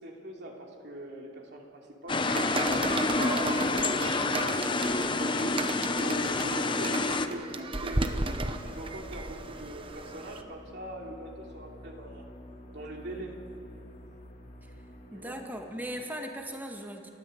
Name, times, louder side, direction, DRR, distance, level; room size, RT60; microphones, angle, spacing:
voice 1, 0.0-4.5 5.1-12.2 12.7-13.4 15.1-15.4, right 1 dB, 55° right, 0 dB, 2.9 m, -42 dB
sound 1, 2.1-7.3, left 3 dB, 25° left, 0.8 m, -28 dB
sound 2, 2.3-10.4, right 2 dB, 25° right, 1.0 m, -34 dB
sound 3, 6.6-16.0, equal, 40° left, 1.9 m, -49 dB
voice 2, 15.1-17.1, equal, 10° right, 2 dB, 1.9 m, -39 dB
29.5 x 13.0 x 8.0 m, 2.8 s
head